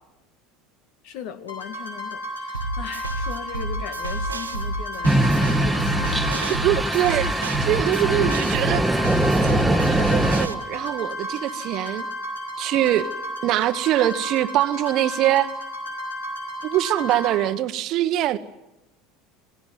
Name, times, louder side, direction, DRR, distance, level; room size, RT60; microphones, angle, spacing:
voice 1, 1.0-6.6, left 8 dB, 60° left, 2.0 m, -38 dB
sound 1, 1.5-17.4, equal, 90° left, 6.7 m, -33 dB
sound 2, 2.5-10.5, right 2 dB, 90° right, 1.1 m, -30 dB
sound 3, 5.0-10.5, right 1 dB, 5° right, 1.5 m, -22 dB
voice 2, 6.6-8.8 9.3-12.1 12.6-13.1 13.4-15.5 16.6-18.4, right 13 dB, 50° right, 1.1 m, -23 dB
26.5 x 18.5 x 9.3 m
figure-of-eight pair, 70°, 0 cm